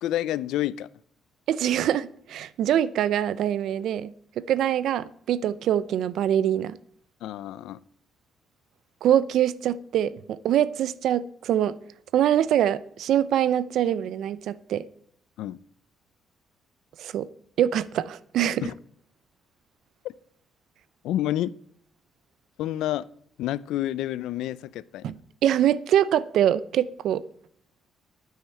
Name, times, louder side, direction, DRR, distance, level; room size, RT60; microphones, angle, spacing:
voice 1, 0.0-0.9 7.2-7.8 15.4-15.6 18.6-18.7 20.0-20.1 21.0-21.5 22.6-23.1 23.4-25.1, left 13 dB, 90° left, 0.5 m, -29 dB
voice 2, 1.5-6.8 9.0-11.8 12.1-14.9 17.0-17.3 17.6-18.6 25.0-25.1 25.4-27.2, right 10 dB, 80° right, 0.6 m, -24 dB
9.8 x 9.3 x 7.7 m
cardioid pair, 90°, 0 cm